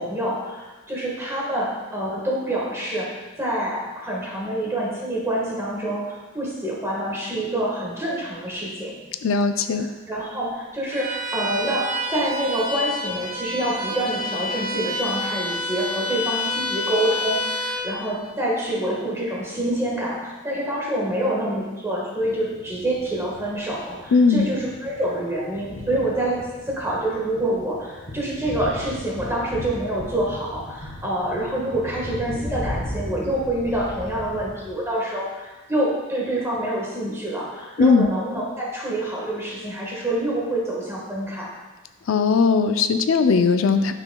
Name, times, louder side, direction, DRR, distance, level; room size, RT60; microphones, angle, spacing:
voice 1, 0.0-3.1 3.4-8.9 9.7-26.4 26.6-41.5, right 1 dB, 15° right, -5 dB, 1.5 m, -27 dB
voice 2, 9.2-9.9 24.1-24.5 37.8-38.1 42.1-43.9, left 5 dB, 80° left, 8 dB, 0.5 m, -18 dB
Bowed string instrument, 10.9-17.9, left 1 dB, 45° right, 1.0 m, -28 dB
Thunder, 22.2-34.8, equal, 40° left, 1.8 m, -37 dB
9.6 x 6.1 x 2.3 m, 1.2 s
head